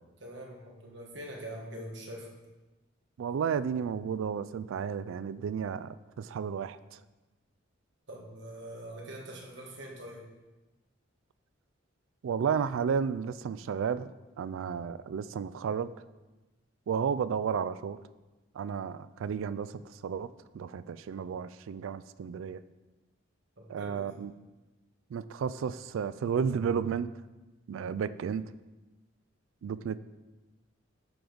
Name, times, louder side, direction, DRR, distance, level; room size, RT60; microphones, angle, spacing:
voice 1, 0.2-2.3 8.1-10.3 23.6-24.2, right 1 dB, 60° right, -1 dB, 1.4 m, -44 dB
voice 2, 3.2-6.8 12.2-14.1 14.4-15.9 16.9-18.0 18.5-20.3 20.5-22.6 23.7-24.3 25.1-27.1 27.7-28.4 29.6-30.0, right 7 dB, 80° right, 16 dB, 0.3 m, -32 dB
9.3 x 5.1 x 3.9 m, 1.1 s
head